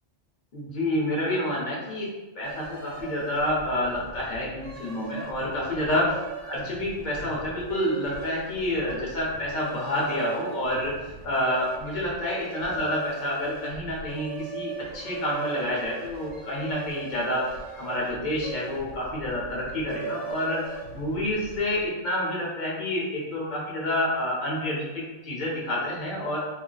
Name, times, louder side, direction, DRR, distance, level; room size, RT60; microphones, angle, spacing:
voice 1, 0.5-2.1 2.3-6.1 6.4-10.9 11.2-17.4 17.8-20.6 20.9-26.4, left 1 dB, 45° left, -5 dB, 0.9 m, -28 dB
sound 1, 2.4-21.9, right 5 dB, 80° right, 0.9 m, -40 dB
2.4 x 2.1 x 3.8 m, 1.1 s
omnidirectional pair, 1.2 m